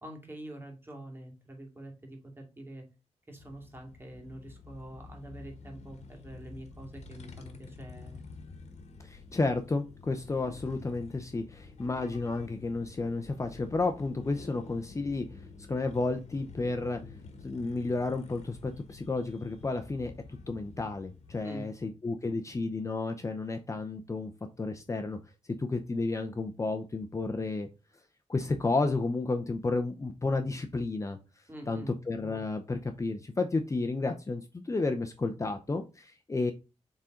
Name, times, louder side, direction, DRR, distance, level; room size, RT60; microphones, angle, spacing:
voice 1, 0.0-2.9 3.3-8.2 21.4-21.7 31.5-31.9, right 1 dB, 20° right, 2 dB, 2.4 m, -45 dB
sound 1, 3.4-21.4, left 4 dB, 75° left, 1.3 m, -49 dB
voice 2, 9.0-15.3 15.7-17.0 17.4-24.3 24.6-25.2 25.6-27.7 28.3-31.2 31.7-36.5, left 3 dB, 25° left, 6 dB, 0.7 m, -32 dB
7.2 x 3.8 x 3.8 m, 0.29 s
wide cardioid pair, 95°, 11 cm